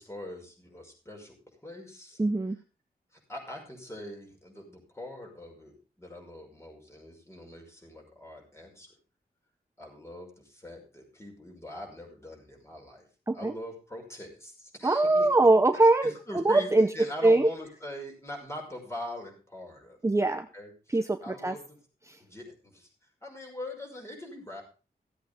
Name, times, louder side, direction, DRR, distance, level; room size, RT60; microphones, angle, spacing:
voice 1, 0.0-2.2 3.1-8.9 9.8-13.1 13.3-15.3 15.8-20.0 20.5-21.6 22.2-22.9 23.2-24.6, left 1 dB, 15° left, 0 dB, 5.7 m, -43 dB
voice 2, 2.2-2.6 13.3-13.5 14.8-16.9 17.2-17.5 20.0-20.5 20.9-21.5 22.1-22.2, right 2 dB, 20° right, 8 dB, 0.7 m, -22 dB
15.0 x 8.3 x 5.1 m, 0.34 s
wide cardioid pair, 105°, 16 cm